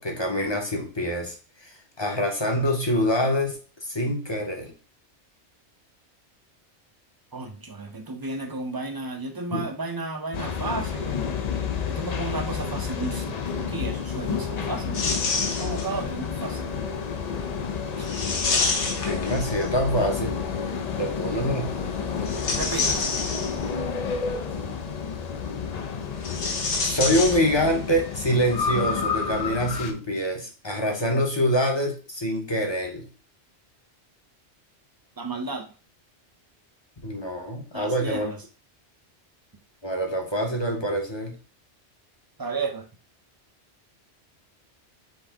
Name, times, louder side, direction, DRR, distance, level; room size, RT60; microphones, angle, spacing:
voice 1, 0.0-1.4 1.6-3.6 3.8-4.7 9.5-9.6 19.0-20.3 21.0-21.7 26.8-33.1 37.0-38.3 39.8-41.4, equal, 25° left, 2 dB, 0.8 m, -25 dB
voice 2, 7.3-11.2 11.9-15.0 15.6-16.7 18.0-18.1 22.6-23.1 35.2-35.7 37.7-38.4 42.4-42.8, right 3 dB, 25° right, 5 dB, 0.5 m, -33 dB
sound 1, 10.3-29.9, left 6 dB, 50° left, 0.5 m, -30 dB
sound 2, 14.9-16.1 18.0-19.9 22.1-23.9 26.1-27.9 28.1-28.2 29.2-29.4, left 4 dB, 75° left, 1.3 m, -28 dB
5.6 x 2.6 x 3.5 m, 0.36 s
omnidirectional pair, 1.2 m